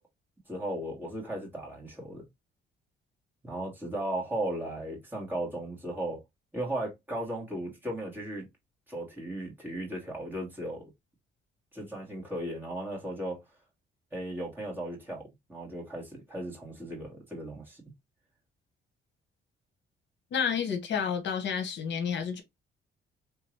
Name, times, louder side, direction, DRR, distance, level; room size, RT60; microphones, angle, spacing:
voice 1, 0.5-2.3 3.4-6.2 6.5-8.5 8.9-10.9 11.7-13.4 14.1-17.8, right 1 dB, 10° right, 2.1 m, -36 dB
voice 2, 20.3-22.4, left 7 dB, 65° left, 1.0 m, -30 dB
3.5 x 2.9 x 3.2 m
cardioid pair, 90°, 20 cm